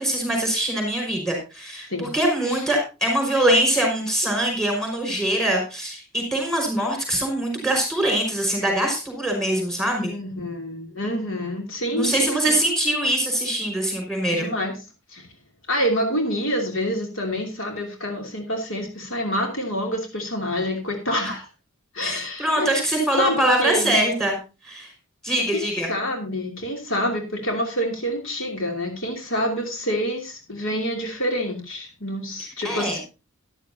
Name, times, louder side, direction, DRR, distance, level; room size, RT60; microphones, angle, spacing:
voice 1, 0.0-10.1 11.9-14.5 22.0-24.4 24.6-24.9 25.2-25.9 32.4-33.0, right 1 dB, ahead, 2 dB, 5.2 m, -23 dB
voice 2, 10.0-12.6 14.3-14.7 15.1-15.3 15.7-21.5 21.9-22.7 23.2-24.0 25.5-33.0, equal, 65° left, 2 dB, 2.9 m, -27 dB
13.0 x 11.5 x 2.8 m, 0.30 s
head